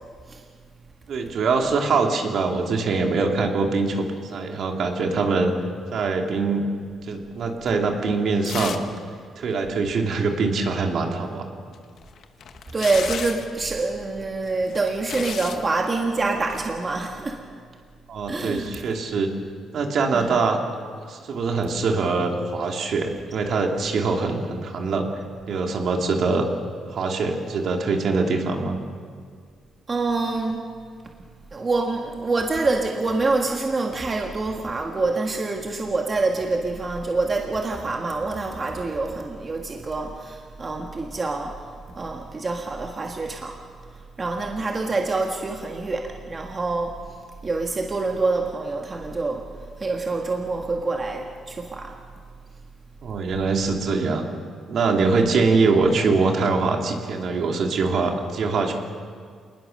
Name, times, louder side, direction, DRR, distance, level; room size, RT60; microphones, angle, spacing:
voice 1, 1.1-4.0 4.3-5.5 5.9-6.6 7.1-8.8 9.4-11.4 18.1-19.3 19.7-20.6 21.1-25.1 25.5-26.5 26.9-28.8 53.0-54.3 54.7-58.7, right 4 dB, 55° right, 2 dB, 2.8 m, -23 dB
sound 1, 8.4-9.0 9.2-9.3 11.7-13.5 14.5-15.6 16.4-16.7, left 7 dB, 60° left, 1.4 m, -34 dB
voice 2, 12.7-17.4 18.3-18.7 20.1-20.4 29.9-30.6 31.5-43.6 43.9-46.9 47.4-51.9 55.0-55.3, right 3 dB, 25° right, 1 dB, 1.7 m, -26 dB
27.5 x 20.0 x 6.7 m, 2.1 s
cardioid pair, 140°, 0 cm